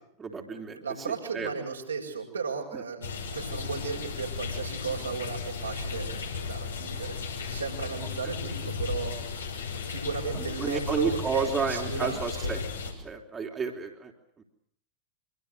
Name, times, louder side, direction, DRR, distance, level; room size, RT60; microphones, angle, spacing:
voice 1, 0.2-1.5 2.7-2.8 10.3-12.6 13.0-14.1, right 5 dB, 20° right, 2 dB, 3.6 m, -32 dB
voice 2, 0.8-9.2 9.9-12.5, right 5 dB, 75° right, 1 dB, 7.2 m, -35 dB
sound 1, 3.0-12.9, left 5 dB, 70° left, 5.9 m, -35 dB
26.0 x 25.5 x 6.8 m, 0.68 s
figure-of-eight pair, 90°, 0 cm